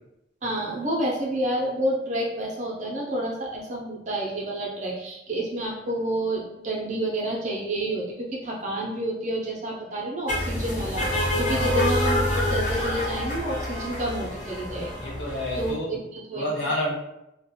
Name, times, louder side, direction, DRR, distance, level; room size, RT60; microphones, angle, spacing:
voice 1, 0.4-15.1 15.6-16.7, right 1 dB, 40° right, -3 dB, 0.6 m, -29 dB
sound 1, 10.3-15.7, left 1 dB, 40° left, 0.5 m, -27 dB
voice 2, 15.0-15.9 16.3-16.9, left 1 dB, 85° left, -5 dB, 0.9 m, -29 dB
2.4 x 2.1 x 2.8 m, 0.88 s
head